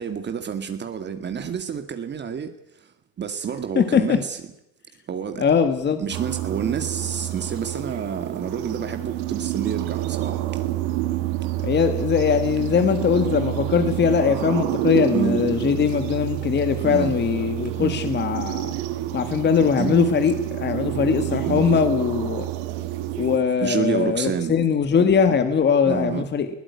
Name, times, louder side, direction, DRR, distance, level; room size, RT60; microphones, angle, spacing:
voice 1, 0.0-2.9 3.2-4.4 5.1-5.5 6.0-10.7 12.8-13.0 15.1-15.4 16.8-17.1 17.8-18.0 19.8-20.0 21.4-21.6 23.6-24.5 25.9-26.3, right 7 dB, 35° right, 8 dB, 2.0 m, -29 dB
voice 2, 3.8-4.2 5.4-6.0 11.6-18.7 19.1-22.5 23.2-26.5, left 6 dB, 35° left, 8 dB, 2.1 m, -21 dB
sound 1, 6.1-23.4, right 14 dB, 85° right, 2.4 m, -28 dB
21.0 x 16.0 x 9.7 m, 0.79 s
cardioid pair, 120°, 32 cm